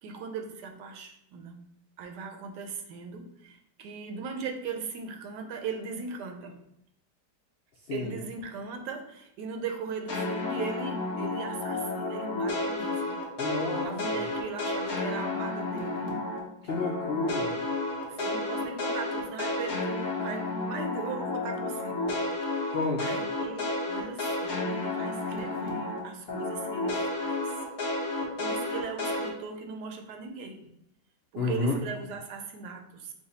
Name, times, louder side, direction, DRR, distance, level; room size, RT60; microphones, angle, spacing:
voice 1, 0.0-1.7 2.0-6.6 7.9-13.2 13.8-16.2 18.0-22.7 23.0-27.6 28.1-30.6 31.3-33.1, right 5 dB, 80° right, 4 dB, 1.2 m, -39 dB
sound 1, 10.1-16.4 16.7-26.0 26.3-29.3, left 2 dB, 60° left, 1.3 m, -31 dB
voice 2, 13.4-13.9 16.6-17.6 22.7-23.0 31.4-31.8, left 3 dB, 75° left, -2 dB, 0.5 m, -30 dB
4.9 x 2.3 x 4.0 m, 0.77 s
omnidirectional pair, 1.8 m